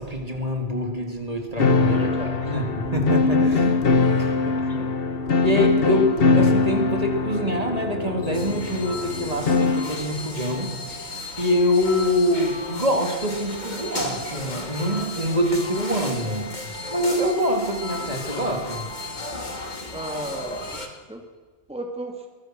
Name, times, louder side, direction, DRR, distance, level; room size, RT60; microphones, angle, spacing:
voice 1, 0.0-2.1 2.4-4.5 5.4-18.9, equal, 30° right, 3 dB, 3.1 m, -25 dB
sound 1, 1.6-10.0, left 3 dB, 55° left, 1.4 m, -22 dB
voice 2, 1.9-2.5 4.5-4.9 19.9-20.8 21.1-21.2 21.7-22.3, right 1 dB, 5° right, 2 dB, 2.4 m, -35 dB
sound 2, 8.3-20.9, left 2 dB, 40° left, 2.8 m, -34 dB
24.0 x 21.5 x 6.3 m, 1.4 s
omnidirectional pair, 1.2 m